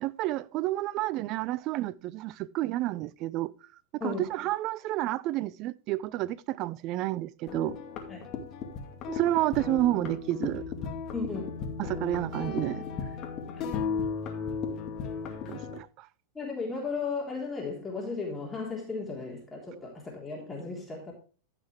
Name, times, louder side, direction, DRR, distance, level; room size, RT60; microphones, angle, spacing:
voice 1, 0.0-3.5 4.0-7.8 9.1-10.6 11.8-12.8 15.5-16.1, right 15 dB, 45° right, 0.5 m, -30 dB
sound 1, 7.5-15.8, left 5 dB, 40° left, 2.2 m, -35 dB
voice 2, 11.1-11.4 16.4-21.1, left 4 dB, 15° left, 3.4 m, -35 dB
14.5 x 5.8 x 3.3 m
hypercardioid pair, 105°, 0 cm